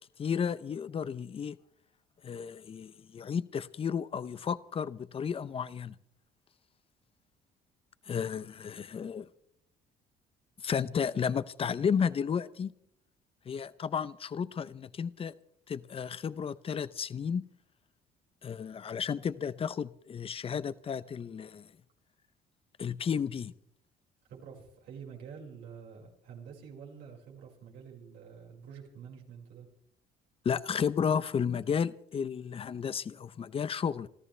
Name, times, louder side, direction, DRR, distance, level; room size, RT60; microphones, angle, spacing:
voice 1, 0.2-1.6 2.2-5.9 8.1-9.3 10.6-12.7 13.5-15.3 15.7-17.4 18.4-21.7 22.8-23.5 30.4-34.1, left 7 dB, 35° left, 0.7 m, -33 dB
voice 2, 24.3-29.7, right 6 dB, 80° right, 5.4 m, -48 dB
28.0 x 13.5 x 3.4 m
cardioid pair, 110°, 17 cm